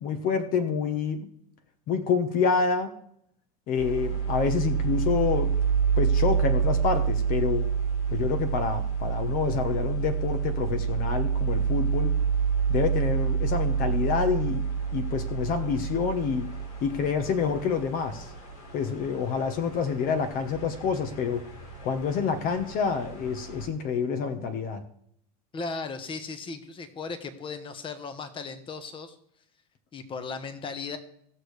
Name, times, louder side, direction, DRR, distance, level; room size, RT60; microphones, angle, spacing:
voice 1, 0.0-1.3 1.9-3.0 3.7-5.5 6.0-7.7 8.1-12.2 12.7-14.7 14.9-16.5 16.8-18.3 18.7-21.5 21.8-24.8, left 6 dB, 45° left, 9 dB, 1.1 m, -27 dB
sound 1, 3.8-23.7, right 6 dB, 70° left, 3.8 m, -28 dB
voice 2, 25.5-29.2 29.9-31.0, left 4 dB, 25° left, 9 dB, 1.3 m, -36 dB
18.0 x 6.6 x 3.3 m, 0.69 s
supercardioid pair, 110°, 20 cm